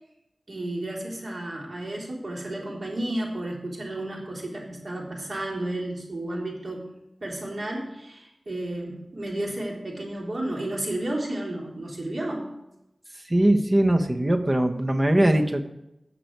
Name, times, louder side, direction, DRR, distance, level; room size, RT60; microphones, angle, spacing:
voice 1, 0.5-6.9 7.2-12.5, right 1 dB, 60° right, -2 dB, 3.4 m, -32 dB
voice 2, 13.3-15.6, right 1 dB, 30° right, 5 dB, 1.2 m, -21 dB
17.5 x 6.0 x 4.7 m, 0.87 s
wide cardioid pair, 80°, 0 cm